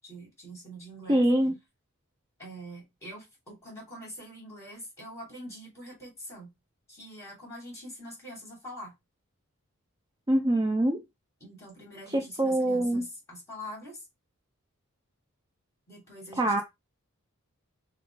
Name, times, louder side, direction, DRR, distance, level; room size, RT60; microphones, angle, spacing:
voice 1, 0.0-1.3 2.4-6.5 6.9-9.0 11.4-14.0 15.9-16.6, equal, 15° left, 2.7 m, -44 dB
voice 2, 1.1-1.6 10.3-11.0 12.1-13.0 16.4-16.6, right 1 dB, 20° right, 0.6 m, -24 dB
4.8 x 2.0 x 4.6 m
head